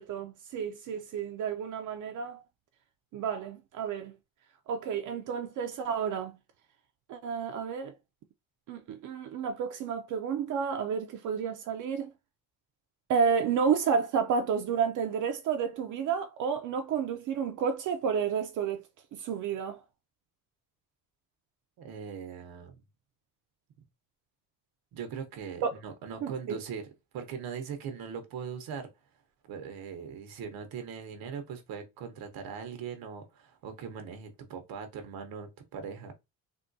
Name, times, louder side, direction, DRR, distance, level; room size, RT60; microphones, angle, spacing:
voice 1, 0.0-2.4 3.1-4.1 4.7-6.3 7.1-7.9 8.7-12.1 13.1-18.8 19.1-19.8 25.6-25.7 26.2-26.6, right 6 dB, 60° right, 0.4 m, -31 dB
voice 2, 21.8-22.8 24.9-28.9 29.4-36.1, right 6 dB, 85° right, 0.8 m, -40 dB
3.6 x 2.2 x 2.6 m
cardioid pair, 150°, 35 cm